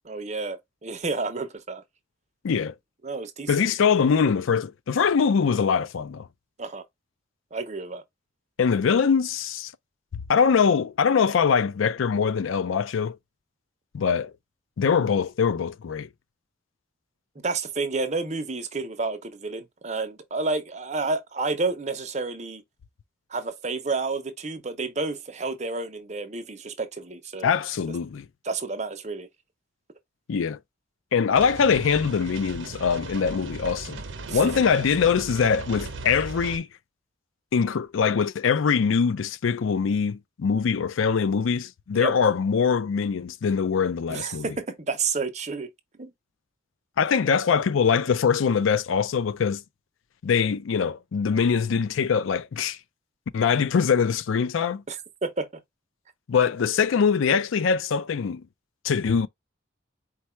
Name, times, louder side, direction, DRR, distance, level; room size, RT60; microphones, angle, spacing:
voice 1, 0.0-1.8 3.0-3.6 6.6-6.8 7.5-8.0 17.4-22.6 23.3-27.5 28.4-29.3 34.3-34.5 41.9-42.1 44.1-45.7 46.0-46.1 54.9-55.5, right 3 dB, 35° right, 0.7 m, -30 dB
voice 2, 3.5-6.3 8.6-9.7 10.3-13.2 13.9-14.3 14.8-16.1 27.4-28.3 30.3-30.6 31.1-34.0 34.3-36.7 37.5-44.5 47.0-49.6 50.2-52.8 53.3-54.8 56.3-58.5 58.8-59.3, left 6 dB, 75° left, 0.4 m, -23 dB
sound 1, 31.3-36.6, right 3 dB, 70° right, 0.8 m, -37 dB
4.5 x 2.3 x 4.3 m
head